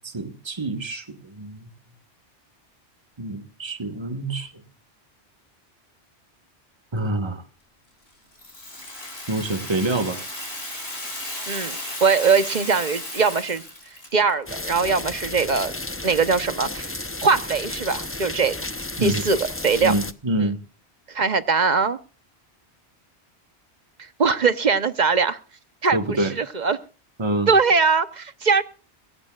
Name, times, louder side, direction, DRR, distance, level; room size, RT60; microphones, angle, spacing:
voice 1, 0.0-1.7 3.2-4.5 6.9-7.4 9.3-10.2 19.0-19.2 19.8-20.6 25.9-26.3 27.2-27.5, right 2 dB, 25° right, 7 dB, 1.5 m, -26 dB
Rattle (instrument), 8.4-14.3, left 1 dB, 65° left, 4.8 m, -34 dB
voice 2, 11.5-13.6 14.1-15.7 16.0-16.9 17.2-18.7 19.0-19.4 19.6-19.9 20.4-20.5 21.1-22.0 24.2-25.4 25.8-26.8 27.5-28.6, right 5 dB, 45° right, 12 dB, 1.0 m, -21 dB
sound 1, 14.5-20.1, left 2 dB, 15° left, 0.6 m, -32 dB
22.0 x 17.5 x 2.4 m, 0.35 s
omnidirectional pair, 1.1 m